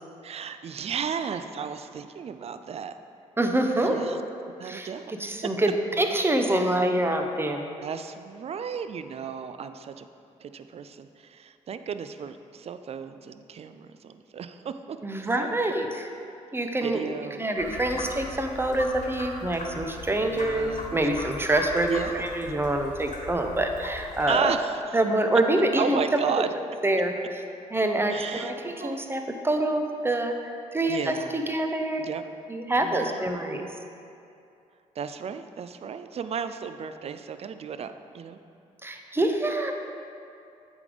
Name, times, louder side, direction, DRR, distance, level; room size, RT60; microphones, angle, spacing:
voice 1, 0.2-2.9 3.8-4.2 4.6-5.1 5.4-5.5 7.8-10.1 10.4-15.0 15.4-15.6 16.8-17.4 17.9-18.1 20.2-21.0 21.8-22.2 24.3-25.0 25.8-26.5 28.1-28.5 28.8-29.0 30.9-31.4 32.0-32.2 32.8-33.3 35.0-38.4, right 7 dB, 40° right, 10 dB, 0.4 m, -34 dB
voice 2, 3.4-4.2 4.6-4.9 5.2-7.7 15.0-16.1 16.5-17.1 17.4-24.5 24.9-26.2 26.8-27.1 27.7-30.3 30.7-32.1 32.5-33.7 38.8-39.7, right 1 dB, 15° right, 4 dB, 0.8 m, -26 dB
sound 1, 17.6-24.3, left 2 dB, 50° left, 1.5 m, -39 dB
8.2 x 3.6 x 5.0 m, 2.6 s
hypercardioid pair, 50°, 16 cm